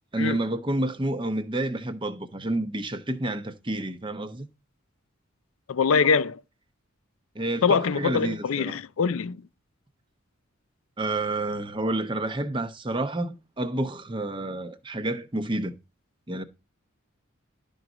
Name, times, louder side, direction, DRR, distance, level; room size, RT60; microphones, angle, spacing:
voice 1, 0.1-4.5 7.3-8.8 11.0-15.7 16.3-16.4, right 2 dB, 25° right, 0.8 m, -29 dB
voice 2, 5.7-6.4 7.6-9.4, left 5 dB, 75° left, 0.5 m, -23 dB
11.5 x 3.9 x 6.0 m
head